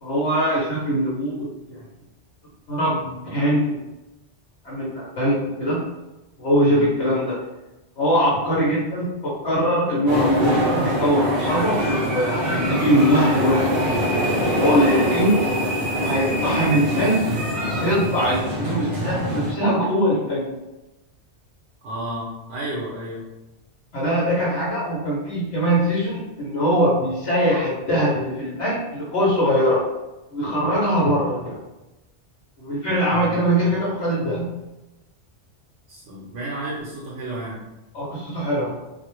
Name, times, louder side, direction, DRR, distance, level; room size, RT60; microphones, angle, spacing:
voice 1, 0.0-1.8 2.7-3.8 4.6-5.8 6.4-7.3 8.0-15.3 15.9-17.2 17.7-20.5 23.9-29.8 30.3-31.6 32.6-34.4 37.9-38.7, equal, 75° left, -7 dB, 1.0 m, -22 dB
sound 1, 10.1-19.5, equal, 35° right, 0.6 m, -23 dB
voice 2, 21.8-23.3 33.1-33.7 35.9-37.6, right 1 dB, 70° right, -4 dB, 0.8 m, -32 dB
2.4 x 2.1 x 2.9 m, 1.0 s
omnidirectional pair, 1.2 m